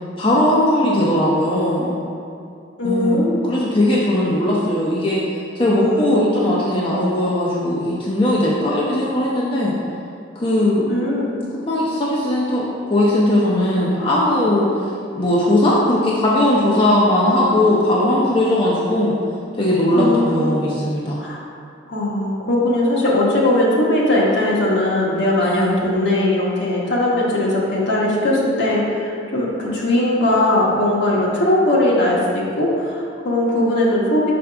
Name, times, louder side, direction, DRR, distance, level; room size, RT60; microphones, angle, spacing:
voice 1, 0.2-1.9 2.8-5.2 5.5-9.7 10.4-10.9 11.5-14.7 15.1-19.2 19.5-21.2 25.4-25.8, left 1 dB, 30° left, -6 dB, 0.7 m, -18 dB
voice 2, 2.8-3.6 5.8-6.3 10.9-11.4 19.9-20.6 21.2-21.4 21.9-34.3, left 1 dB, 65° left, -5 dB, 1.3 m, -19 dB
6.1 x 5.1 x 3.4 m, 2.5 s
head